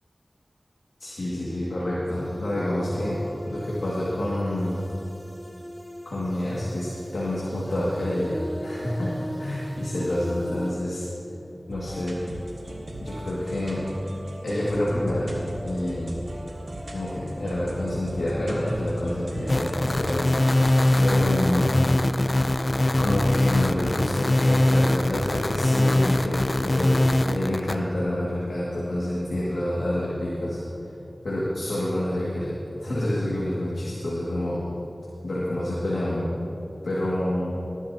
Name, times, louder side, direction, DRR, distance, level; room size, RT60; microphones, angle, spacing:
voice 1, 1.0-4.8 6.1-11.0 11.7-12.2 13.0-13.9 14.4-16.2 16.9-20.3 21.0-21.8 23.0-30.6 31.2-32.5 32.8-34.6 35.2-36.3 36.8-37.5, left 1 dB, 90° left, -8 dB, 2.1 m, -28 dB
sound 1, 2.1-10.7, equal, 15° right, 1.4 m, -39 dB
sound 2, 11.7-21.0, right 1 dB, 75° right, 1.9 m, -39 dB
sound 3, 19.5-27.7, left 1 dB, 45° left, 0.5 m, -22 dB
19.0 x 12.0 x 2.9 m, 2.8 s
wide cardioid pair, 45°, 0 cm